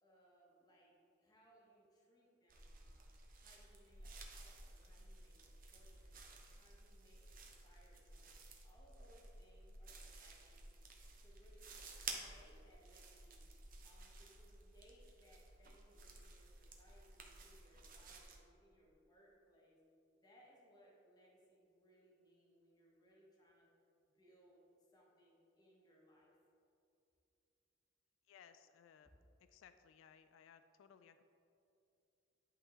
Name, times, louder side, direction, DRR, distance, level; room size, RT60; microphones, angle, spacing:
voice 1, 0.0-3.1 3.4-6.2 6.5-8.3 8.6-10.7 11.2-13.5 13.8-19.8 20.2-23.7 24.0-26.4, equal, 20° left, -4 dB, 1.1 m, -68 dB
sound 1, 2.5-18.4, right 3 dB, 45° right, 0.7 m, -54 dB
voice 2, 28.3-29.1 29.5-31.2, left 8 dB, 90° left, 10 dB, 0.3 m, -63 dB
11.0 x 3.7 x 3.0 m, 2.6 s
head